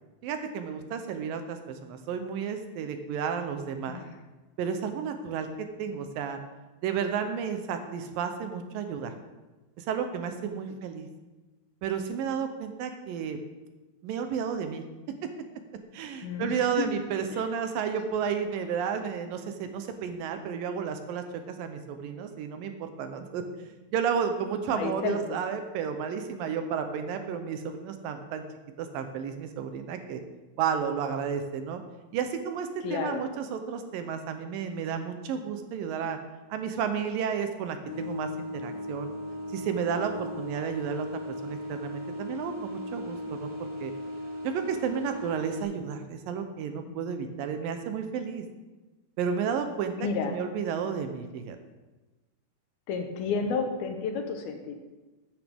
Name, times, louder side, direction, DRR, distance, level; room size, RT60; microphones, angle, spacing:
voice 1, 0.2-4.1 4.6-6.4 6.8-9.1 9.8-11.1 11.8-13.4 14.0-14.8 15.2-15.3 15.9-23.4 23.9-28.4 28.8-30.2 30.6-31.8 32.1-36.2 36.5-39.1 39.5-41.1 41.4-43.9 44.4-48.4 49.2-49.9 50.2-51.6, right 7 dB, 75° right, 7 dB, 2.4 m, -32 dB
voice 2, 16.2-16.9 17.3-17.4 24.8-25.4 32.8-33.2 46.9-47.2 50.0-50.4 52.9-54.8, left 5 dB, 85° left, 4 dB, 3.0 m, -31 dB
sound 1, 37.8-45.6, left 1 dB, 5° right, 2.7 m, -37 dB
14.5 x 9.2 x 3.6 m, 1.2 s
omnidirectional pair, 4.3 m